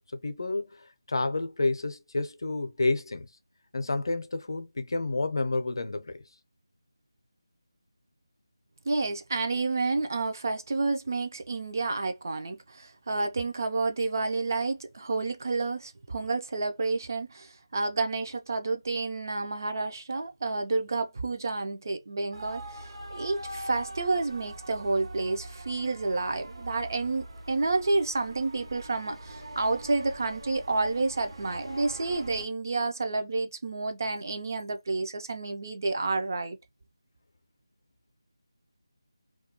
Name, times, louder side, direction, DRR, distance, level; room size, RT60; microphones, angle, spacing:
voice 1, 0.1-3.3 3.7-6.3, left 2 dB, 55° left, 0.5 m, -30 dB
voice 2, 8.9-36.6, right 3 dB, 40° right, 0.3 m, -30 dB
sound 1, 22.3-32.5, right 1 dB, 75° right, 0.7 m, -43 dB
2.3 x 2.1 x 2.8 m
figure-of-eight pair, 170°, 3 cm